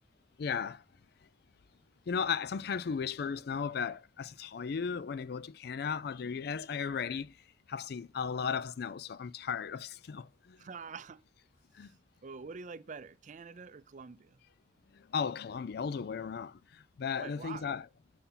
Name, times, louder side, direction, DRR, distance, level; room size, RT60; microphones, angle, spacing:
voice 1, 0.4-0.8 2.1-7.3 7.7-10.6 11.7-11.9 14.9-17.9, left 6 dB, 60° left, 0.4 m, -36 dB
voice 2, 10.6-11.2 12.2-14.4 17.2-17.7, right 5 dB, 45° right, 0.5 m, -46 dB
9.9 x 5.7 x 3.8 m
head